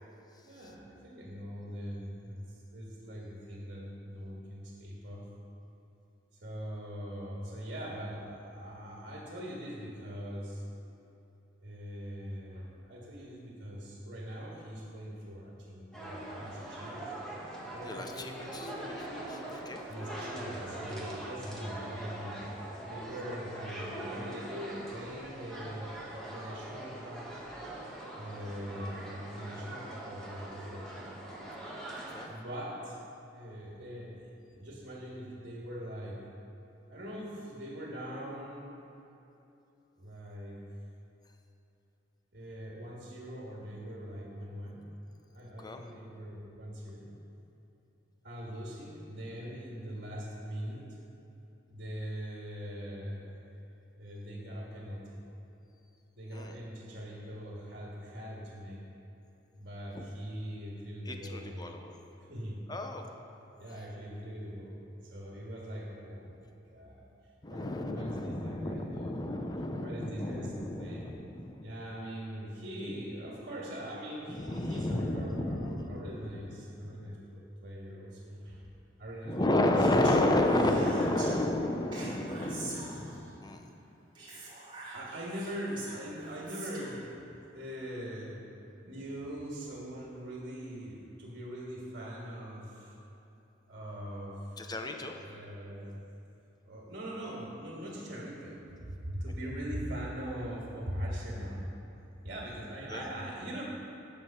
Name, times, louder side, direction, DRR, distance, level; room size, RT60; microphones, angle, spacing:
voice 1, 0.4-5.3 6.4-10.6 11.6-17.1 17.7-18.9 19.9-25.9 26.3-27.4 28.1-31.1 32.3-33.0 33.3-36.2 36.9-38.7 40.0-40.6 42.3-44.9 45.3-47.1 48.2-50.9 51.7-53.4 53.9-55.2 56.2-58.9 59.6-61.7 62.3-62.6 63.6-66.4 66.7-67.1 67.5-69.3 69.8-71.1 71.6-78.6 79.0-79.8 80.4-80.9 81.2-81.3 84.8-88.4 88.9-92.9 93.7-94.7 95.2-96.0 96.6-101.6 102.2-103.6, equal, 55° right, -4 dB, 1.8 m, -42 dB
sound 1, 15.9-32.2, right 1 dB, 5° left, 1.4 m, -42 dB
voice 2, 17.8-19.8 32.1-32.3 45.6-45.8 56.3-56.5 59.9-60.0 61.1-61.9 62.7-63.1 67.4-71.7 74.3-76.1 76.8-77.2 79.2-83.7 94.6-95.2 102.9-103.0, left 1 dB, 20° left, 4 dB, 0.7 m, -32 dB
Speech, 79.7-81.3 81.9-83.3 84.1-87.0, right 2 dB, 25° right, 2.1 m, -45 dB
9.5 x 6.6 x 5.8 m, 2.9 s
head